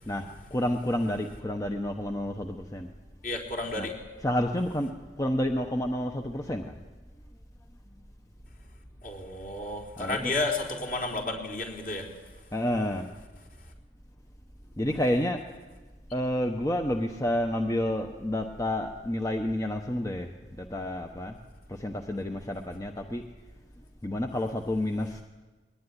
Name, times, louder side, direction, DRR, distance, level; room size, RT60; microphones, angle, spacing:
voice 1, 0.1-2.9 3.8-3.9 4.2-4.9 5.2-6.8 10.0-10.3 12.5-13.1 14.8-15.4 16.1-20.3 20.6-21.4 21.7-23.2 24.0-25.2, left 1 dB, 20° left, 4 dB, 1.0 m, -29 dB
voice 2, 3.2-4.0 9.0-12.1, left 2 dB, 50° left, 0 dB, 4.2 m, -32 dB
21.5 x 19.0 x 10.0 m, 1.3 s
head